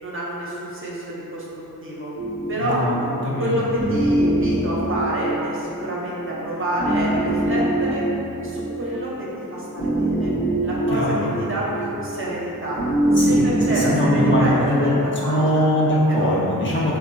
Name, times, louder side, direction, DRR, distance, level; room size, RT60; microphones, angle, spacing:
voice 1, 0.0-2.1 2.5-2.8 3.4-8.0 8.4-10.3 10.6-12.8 13.3-15.7 16.1-16.3, right 1 dB, 35° right, -6 dB, 0.6 m, -28 dB
sound 1, 2.1-14.5, right 1 dB, 90° left, 0.9 m, -24 dB
voice 2, 2.6-2.9 3.2-3.6 10.9-11.3 13.2-14.9 15.2-17.0, equal, 35° left, -7 dB, 0.5 m, -21 dB
3.0 x 2.1 x 2.4 m, 3.0 s
cardioid pair, 60°, 36 cm